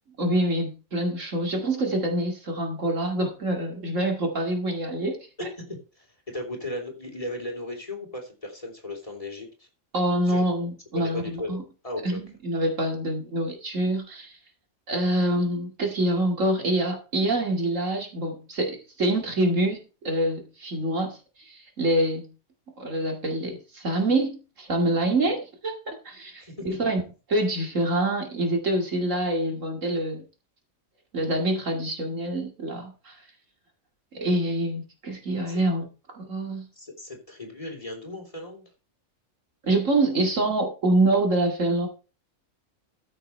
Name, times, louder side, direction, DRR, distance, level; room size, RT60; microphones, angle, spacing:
voice 1, 0.2-5.5 9.9-11.6 12.0-14.4 14.9-22.3 22.8-27.0 27.3-30.2 31.1-33.2 34.1-35.9 36.1-36.6 39.6-41.9, right 1 dB, 65° right, 2 dB, 2.6 m, -26 dB
voice 2, 5.4-9.7 10.2-10.5 10.9-12.2 25.0-25.1 26.4-26.8 35.4-35.6 36.7-38.7, left 1 dB, 25° left, 2 dB, 3.2 m, -36 dB
14.0 x 6.4 x 4.4 m, 0.33 s
omnidirectional pair, 1.4 m